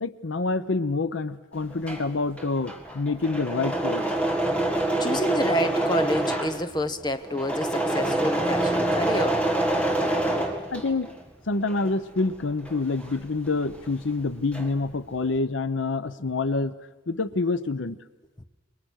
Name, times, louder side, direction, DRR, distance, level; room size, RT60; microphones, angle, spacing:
voice 1, 0.0-4.0 10.7-11.1 11.5-16.8 17.1-18.0, left 3 dB, 80° left, 14 dB, 0.8 m, -27 dB
Engine / Mechanisms, 1.6-11.2 11.5-13.9 14.2-14.9, right 1 dB, 5° left, 1.9 m, -26 dB
voice 2, 5.0-9.4, left 1 dB, 20° left, 9 dB, 1.1 m, -28 dB
28.0 x 23.0 x 6.4 m, 1.1 s
head